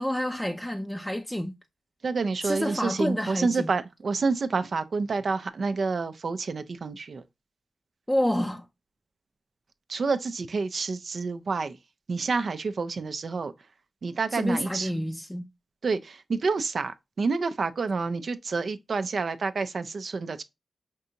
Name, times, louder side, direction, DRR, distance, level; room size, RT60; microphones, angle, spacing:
voice 1, 0.0-1.5 2.4-3.7 8.1-8.7 14.3-15.5, equal, 10° left, 0.5 m, -28 dB
voice 2, 2.0-7.2 9.9-11.8 12.1-13.5 14.0-14.9 15.8-16.0 16.3-20.4, right 4 dB, 65° right, 0.4 m, -28 dB
5.3 x 2.6 x 2.7 m
cardioid pair, 55°, 0 cm